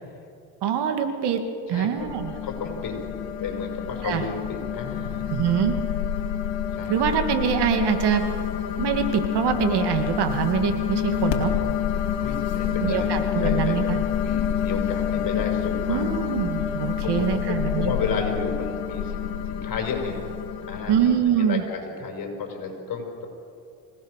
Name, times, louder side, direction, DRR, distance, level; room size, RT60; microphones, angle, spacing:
voice 1, 0.6-1.4 1.7-2.4 4.0-4.3 5.3-5.8 6.9-8.2 8.8-11.5 12.8-14.0 15.9-18.0 20.9-21.6, right 8 dB, 60° right, 6 dB, 2.3 m, -24 dB
voice 2, 1.7-2.1 2.4-3.0 3.4-5.4 6.7-7.0 12.2-13.7 14.2-16.1 17.0-20.2 20.7-21.0 21.4-23.3, left 5 dB, 50° left, 2 dB, 5.7 m, -32 dB
sound 1, 2.0-21.2, left 9 dB, 70° left, 2.5 m, -28 dB
26.0 x 18.0 x 6.6 m, 2.5 s
cardioid pair, 110°, 45 cm